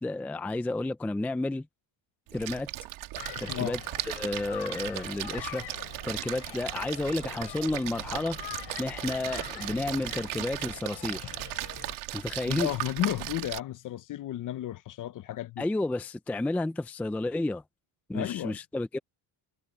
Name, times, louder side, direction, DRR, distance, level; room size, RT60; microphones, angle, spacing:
voice 1, 0.0-1.7 2.3-2.7 3.4-5.7 6.0-8.4 8.8-11.3 12.1-12.7 15.6-17.6 18.1-19.0, left 2 dB, 5° left, 0.4 m, -31 dB
Splash splatter, 2.3-13.6, right 17 dB, 75° right, 2.2 m, -37 dB
sound 1, 3.1-12.0, left 14 dB, 55° left, 4.9 m, -44 dB
voice 2, 12.4-15.7 18.1-18.6, left 13 dB, 40° left, 0.7 m, -33 dB
cardioid pair, 155°, 49 cm